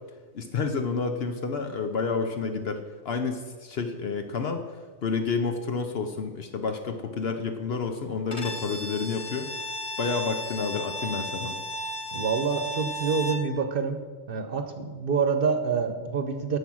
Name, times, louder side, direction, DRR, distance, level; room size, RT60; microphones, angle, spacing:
voice 1, 0.3-9.5 10.0-11.6, left 4 dB, 60° left, 6 dB, 1.0 m, -30 dB
Bowed string instrument, 8.3-13.5, equal, 30° left, 1.0 m, -34 dB
voice 2, 12.1-14.0 14.3-16.6, right 5 dB, 55° right, 8 dB, 0.9 m, -27 dB
11.0 x 7.1 x 6.2 m, 1.5 s
omnidirectional pair, 1.2 m